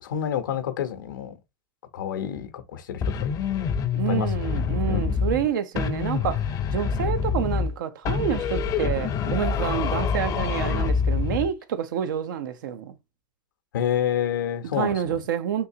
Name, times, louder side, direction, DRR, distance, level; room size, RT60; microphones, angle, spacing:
voice 1, 0.0-1.4 1.9-3.4 4.1-5.2 13.7-15.2, left 9 dB, 85° left, 0.7 m, -29 dB
sound 1, 3.0-5.5 5.8-7.8 8.1-11.5, left 6 dB, 35° left, 0.5 m, -26 dB
voice 2, 4.0-13.0 14.8-15.7, right 9 dB, 80° right, 0.6 m, -28 dB
3.7 x 2.8 x 2.7 m
hypercardioid pair, 110°, 10 cm